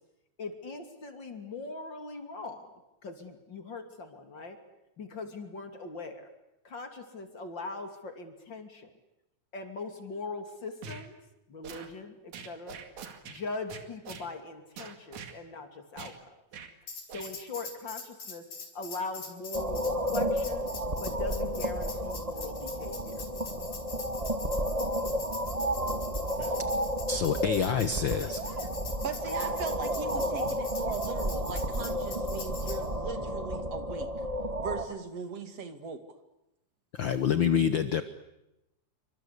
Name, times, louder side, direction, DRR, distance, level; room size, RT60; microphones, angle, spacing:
voice 1, 0.4-2.7 3.0-4.6 5.0-6.3 6.6-8.9 9.5-11.2 11.5-12.8 13.2-16.1 17.1-18.4 18.7-20.7 21.0-23.2, left 3 dB, 40° left, 6 dB, 3.4 m, -40 dB
sound 1, 10.8-11.1 11.6-11.9 12.3-13.4 13.7-14.3 14.8-15.3 16.0-16.2 16.5-16.7 17.1-17.3, right 6 dB, 85° right, 3.7 m, -43 dB
Tambourine, 16.9-32.8, left 4 dB, 85° left, 6.4 m, -43 dB
non human female voices modulations, 19.5-34.9, equal, 20° right, 1.0 m, -32 dB
voice 2, 27.1-28.7 37.0-38.0, left 7 dB, 55° left, 11 dB, 1.4 m, -27 dB
voice 3, 29.0-34.1 34.6-36.0, right 5 dB, 60° right, 8 dB, 3.1 m, -39 dB
27.5 x 25.5 x 8.4 m, 0.90 s
omnidirectional pair, 3.3 m